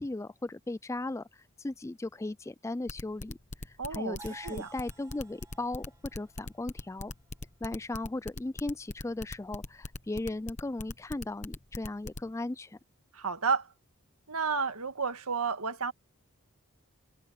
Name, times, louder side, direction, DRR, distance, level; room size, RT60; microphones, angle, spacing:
voice 1, 0.0-3.4 3.7-7.1 7.6-12.8, left 2 dB, 15° left, 0.3 m, -37 dB
sound 1, 2.9-12.2, left 2 dB, 35° left, 1.1 m, -40 dB
voice 2, 3.8-4.2 4.4-4.7 13.1-13.7 14.3-15.9, right 5 dB, 90° right, 1.8 m, -31 dB
sound 2, 4.2-8.1, right 3 dB, 15° right, 2.4 m, -54 dB
head